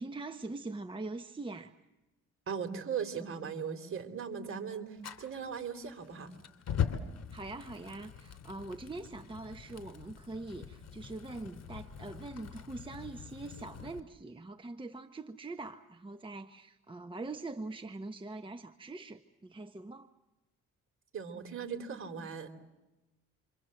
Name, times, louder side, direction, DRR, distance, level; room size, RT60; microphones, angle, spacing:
voice 1, 0.0-1.7 7.3-20.1, right 2 dB, 15° right, 6 dB, 1.1 m, -43 dB
voice 2, 2.5-6.3 21.1-22.5, right 6 dB, 45° right, 6 dB, 3.6 m, -38 dB
Fire, 5.0-14.0, left 8 dB, 60° left, 3.0 m, -41 dB
28.5 x 26.0 x 7.8 m, 1.0 s
cardioid pair, 90°, 30 cm